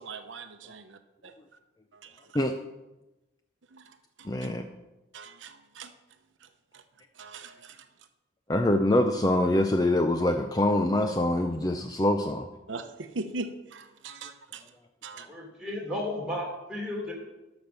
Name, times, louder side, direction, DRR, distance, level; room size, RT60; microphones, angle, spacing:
voice 1, 0.0-1.3 1.9-2.4 3.7-4.3 5.1-5.9 6.4-6.5 6.7-6.8 7.2-7.9 12.7-14.6 15.0-15.3, right 3 dB, 80° right, 8 dB, 0.8 m, -41 dB
voice 2, 4.2-4.6 8.5-12.5, left 1 dB, 20° left, 6 dB, 0.5 m, -24 dB
voice 3, 15.3-17.1, left 1 dB, 5° right, -3 dB, 3.0 m, -33 dB
12.0 x 6.1 x 6.7 m, 1.0 s
head